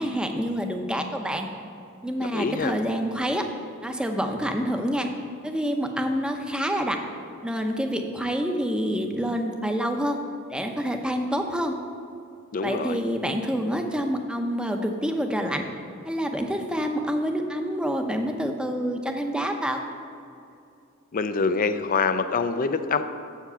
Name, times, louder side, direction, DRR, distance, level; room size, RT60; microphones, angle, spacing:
voice 1, 0.0-1.5 2.0-3.4 3.8-5.1 5.4-7.0 7.4-10.2 10.5-11.7 12.6-15.6 16.0-19.8, equal, 5° right, 4 dB, 0.7 m, -27 dB
voice 2, 2.2-2.7 12.5-13.0 21.1-23.0, left 4 dB, 40° left, 10 dB, 0.4 m, -25 dB
7.6 x 7.3 x 6.9 m, 2.5 s
head